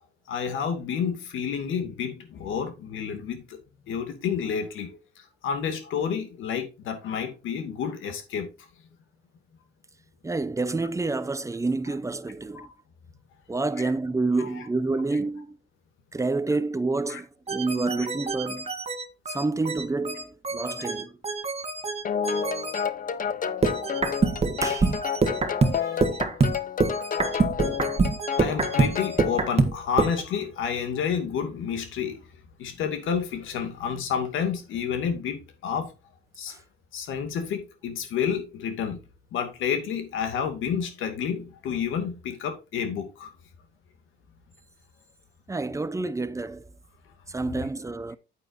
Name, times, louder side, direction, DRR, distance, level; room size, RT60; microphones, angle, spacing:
voice 1, 0.3-3.6 3.9-5.0 5.4-8.5 12.5-12.7 13.8-13.9 14.4-14.5 17.1-17.2 17.7-17.8 20.5-20.6 24.6-24.8 25.7-26.0 28.4-32.2 32.6-35.9 36.4-36.6 36.9-39.0 39.3-43.3 47.5-47.6, left 7 dB, 80° left, 2.5 m, -30 dB
voice 2, 10.2-12.7 13.5-15.6 16.1-18.7 19.3-21.2 24.6-24.9 25.8-26.0 45.5-46.7 47.3-48.2, right 3 dB, 15° right, 0.7 m, -28 dB
sound 1, 17.5-22.8 23.6-30.2, right 4 dB, 30° right, 1.6 m, -26 dB
sound 2, 22.0-29.4, left 7 dB, 45° left, 0.9 m, -30 dB
9.0 x 8.4 x 2.7 m
cardioid pair, 90°, 20 cm